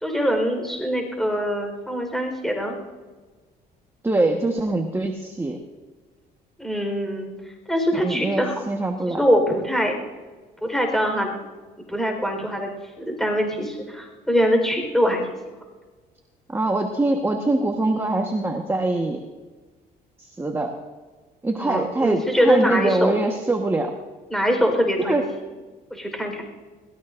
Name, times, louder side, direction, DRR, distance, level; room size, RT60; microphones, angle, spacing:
voice 1, 0.0-2.8 6.6-7.3 7.7-8.6 9.1-10.0 10.6-11.3 11.9-12.7 13.0-15.4 21.6-23.1 24.3-25.2 25.9-26.4, equal, ahead, 2 dB, 4.3 m, -23 dB
voice 2, 4.0-5.6 8.0-9.2 16.5-19.2 20.2-20.8 21.4-23.9 25.1-25.2, right 2 dB, 15° right, 2 dB, 1.3 m, -23 dB
22.0 x 19.0 x 2.6 m, 1.4 s
cardioid pair, 110°, 17 cm